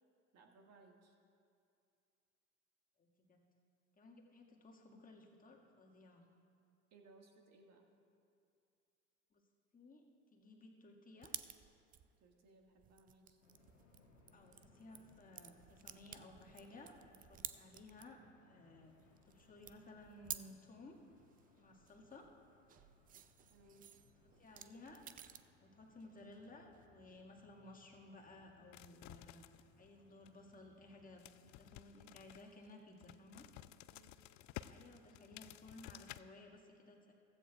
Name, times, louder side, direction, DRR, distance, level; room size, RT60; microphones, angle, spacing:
voice 1, 0.3-1.1 6.9-7.9 12.2-13.4 23.5-23.9 33.9-34.2, right 3 dB, 45° right, 1 dB, 1.8 m, -64 dB
voice 2, 3.0-3.4 4.0-6.3 9.3-9.4 9.7-10.1 10.3-11.4 14.3-19.0 19.2-21.0 21.6-22.3 24.4-25.0 25.6-29.5 29.8-33.5 34.3-37.1, left 2 dB, 20° left, -1 dB, 1.9 m, -58 dB
sound 1, 11.2-18.3 18.5-20.6 20.9-25.5 25.8-26.9, right 9 dB, 25° right, 0.4 m, -54 dB
sound 2, 13.4-31.9, left 3 dB, 85° left, 1.3 m, -70 dB
sound 3, 28.7-29.9 30.2-30.5 31.2-36.2, left 15 dB, 50° left, 0.4 m, -54 dB
15.5 x 14.0 x 2.4 m, 2.5 s
hypercardioid pair, 75°, 37 cm